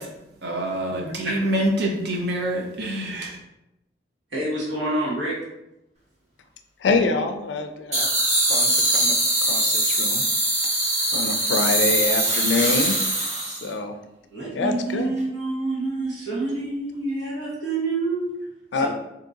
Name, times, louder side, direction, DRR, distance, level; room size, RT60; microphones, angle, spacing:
voice 1, 0.4-3.4, right 1 dB, 65° right, 0 dB, 0.7 m, -26 dB
voice 2, 1.2-1.6 4.3-5.3 14.3-18.3 18.7-18.9, right 2 dB, 85° right, -6 dB, 1.1 m, -27 dB
voice 3, 6.8-10.2 11.1-13.0 13.5-14.0 14.5-15.1 18.7-18.9, left 3 dB, 75° left, 7 dB, 0.3 m, -26 dB
sound 1, 7.9-13.7, right 1 dB, 40° right, 1.1 m, -22 dB
3.8 x 2.8 x 2.4 m, 0.89 s
head